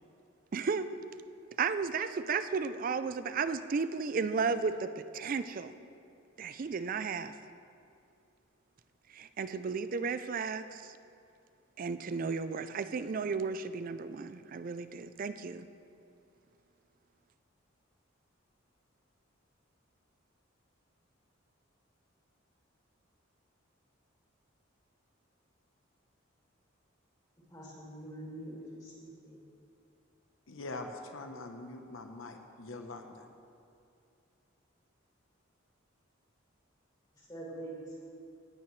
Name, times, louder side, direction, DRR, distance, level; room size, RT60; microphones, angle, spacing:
voice 1, 0.5-0.9 1.6-5.7 6.4-7.3 9.1-11.0 11.8-15.7, right 5 dB, 45° right, 12 dB, 0.4 m, -34 dB
voice 2, 27.5-29.4 37.2-38.1, right 1 dB, 20° left, -6 dB, 2.6 m, -45 dB
voice 3, 30.5-33.3, left 2 dB, 80° left, 5 dB, 0.9 m, -43 dB
18.0 x 8.6 x 3.1 m, 2.5 s
head